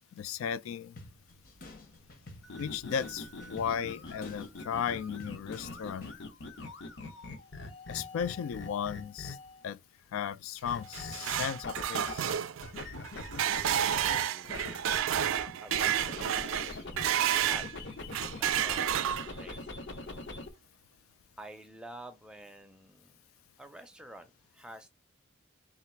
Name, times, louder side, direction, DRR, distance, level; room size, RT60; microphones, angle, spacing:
voice 1, 0.2-1.0 2.6-6.1 7.9-9.4 9.6-9.8 10.1-12.3, left 8 dB, 90° left, 0.3 m, -35 dB
sound 1, 1.0-6.2, left 2 dB, 45° left, 1.0 m, -50 dB
sound 2, 2.4-9.6 10.6-12.3 12.6-17.1 17.4-20.5, left 2 dB, 60° left, 0.7 m, -43 dB
sound 3, 10.7-17.7 18.1-19.5, right 10 dB, 85° right, 0.4 m, -30 dB
voice 2, 13.6-17.7 18.1-19.7 20.0-20.5 21.4-23.2 23.6-24.9, right 1 dB, 5° right, 0.4 m, -50 dB
3.7 x 2.4 x 4.4 m
head